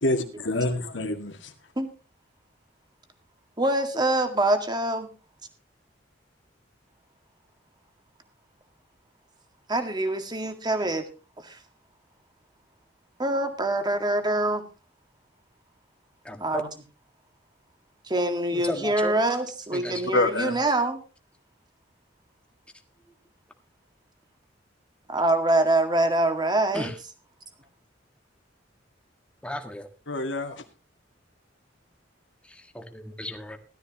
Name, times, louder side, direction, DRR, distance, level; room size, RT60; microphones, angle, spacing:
voice 1, 0.0-1.5 20.1-20.6 30.1-30.6, left 2 dB, 75° left, 6 dB, 2.1 m, -26 dB
voice 2, 3.6-5.1 9.7-11.0 11.4-11.6 13.2-14.6 16.4-16.7 18.1-21.0 25.1-26.9, right 1 dB, 25° right, 7 dB, 2.0 m, -24 dB
voice 3, 16.2-16.6 18.5-19.2 19.7-20.1 23.1-23.2 26.7-27.0 29.4-29.9 32.4-33.6, left 1 dB, 5° left, 5 dB, 1.7 m, -34 dB
16.5 x 13.0 x 3.0 m, 0.33 s
head